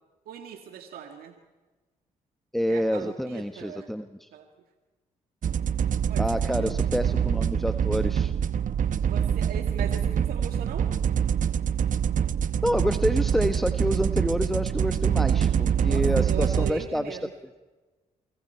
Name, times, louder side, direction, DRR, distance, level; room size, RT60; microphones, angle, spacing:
voice 1, 0.3-1.3 2.7-3.9 4.3-4.4 6.1-6.7 9.1-10.9 15.9-17.3, right 8 dB, 75° right, 5 dB, 1.9 m, -39 dB
voice 2, 2.5-4.3 6.2-8.3 12.6-17.2, equal, ahead, 8 dB, 1.3 m, -28 dB
sound 1, 5.4-16.7, right 8 dB, 60° right, 1.0 m, -25 dB
28.0 x 25.5 x 4.5 m, 1.2 s
supercardioid pair, 55°, 16 cm